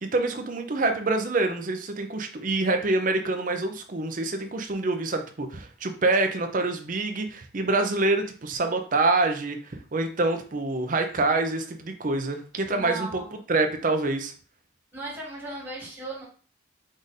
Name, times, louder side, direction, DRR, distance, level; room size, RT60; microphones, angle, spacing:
voice 1, 0.0-9.6 9.9-13.2 13.5-14.3, right 2 dB, 40° right, 6 dB, 0.5 m, -26 dB
voice 2, 12.7-13.3 14.9-16.2, right 2 dB, 10° right, -5 dB, 1.6 m, -36 dB
4.9 x 2.6 x 4.0 m, 0.41 s
head